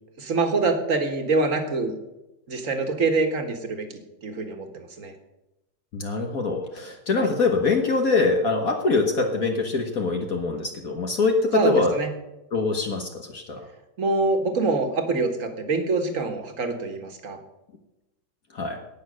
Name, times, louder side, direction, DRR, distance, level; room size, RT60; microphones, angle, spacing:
voice 1, 0.2-2.0 2.5-5.1 7.2-7.3 11.5-12.1 14.0-17.4, right 3 dB, 45° right, 6 dB, 1.9 m, -25 dB
voice 2, 5.9-11.9 12.5-13.6 18.5-18.8, left 3 dB, 55° left, 3 dB, 1.7 m, -24 dB
18.0 x 6.6 x 6.4 m, 0.95 s
omnidirectional pair, 1.9 m